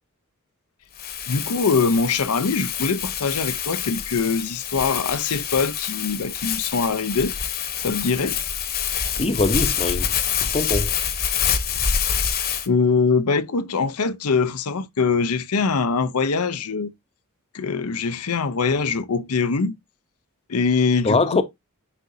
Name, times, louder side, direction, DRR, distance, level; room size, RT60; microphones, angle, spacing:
Crumpling crinkling, 1.0-12.7, left 7 dB, 45° left, 1.0 m, -26 dB
voice 1, 1.3-7.3 7.8-8.4 12.7-16.9 17.5-19.7 20.5-21.4, left 4 dB, 90° left, 0.7 m, -23 dB
voice 2, 9.2-10.1 10.4-10.9 21.0-21.4, left 3 dB, 25° left, 0.7 m, -22 dB
9.9 x 4.2 x 2.7 m
head